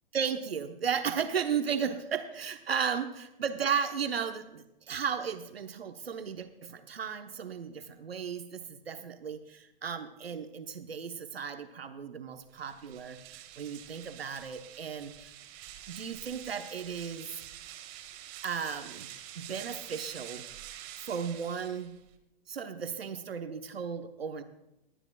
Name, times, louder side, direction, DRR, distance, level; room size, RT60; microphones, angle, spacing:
voice 1, 0.1-15.4 15.9-17.3 18.4-19.1 19.4-20.4 21.0-21.9 22.5-24.4, right 7 dB, 80° right, 8 dB, 0.9 m, -35 dB
sound 1, 12.5-22.2, right 12 dB, 35° right, 1.3 m, -47 dB
21.0 x 9.9 x 2.3 m, 0.90 s
figure-of-eight pair, 110°, 30 cm